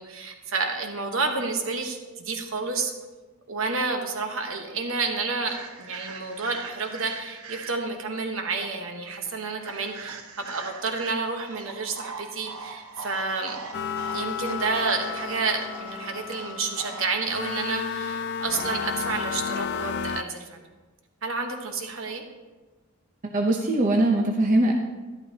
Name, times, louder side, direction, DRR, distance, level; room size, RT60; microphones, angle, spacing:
voice 1, 0.0-2.9 3.5-13.6 14.1-20.6 21.2-22.2, right 4 dB, 65° right, 4 dB, 1.2 m, -30 dB
sound 1, 5.5-8.0 9.6-17.0, right 4 dB, 85° right, 0.9 m, -42 dB
sound 2, 13.7-20.2, left 6 dB, 50° left, 0.4 m, -32 dB
voice 2, 23.2-24.7, right 1 dB, 35° right, 1 dB, 0.7 m, -21 dB
12.0 x 11.5 x 2.9 m, 1.3 s
head